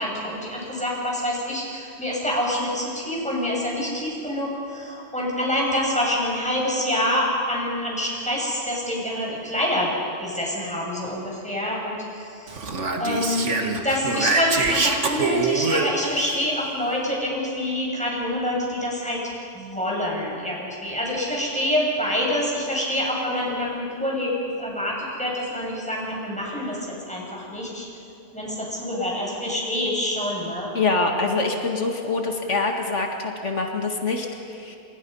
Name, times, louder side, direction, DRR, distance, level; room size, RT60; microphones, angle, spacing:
voice 1, 0.0-9.9 10.2-12.5 13.0-13.5 13.8-19.2 19.5-27.9 28.3-30.7, left 1 dB, 5° left, -4 dB, 7.4 m, -26 dB
Speech, 12.5-16.4, right 4 dB, 90° right, 2.1 m, -25 dB
voice 2, 30.7-34.8, left 3 dB, 85° left, 2 dB, 2.2 m, -25 dB
28.5 x 28.0 x 5.6 m, 2.5 s
omnidirectional pair, 1.2 m